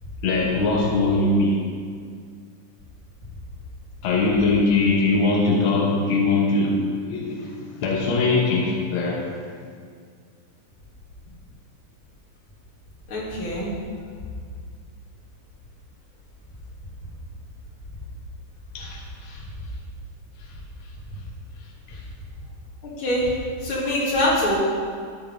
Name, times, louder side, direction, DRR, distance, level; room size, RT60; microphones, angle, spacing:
voice 1, 0.2-1.7 4.0-9.4 18.7-19.4 21.9-22.0, left 3 dB, 75° left, -1 dB, 1.1 m, -22 dB
voice 2, 13.1-13.7 23.0-23.3 23.6-24.6, left 1 dB, 40° left, -7 dB, 2.9 m, -23 dB
13.0 x 9.5 x 3.5 m, 2.1 s
omnidirectional pair, 3.9 m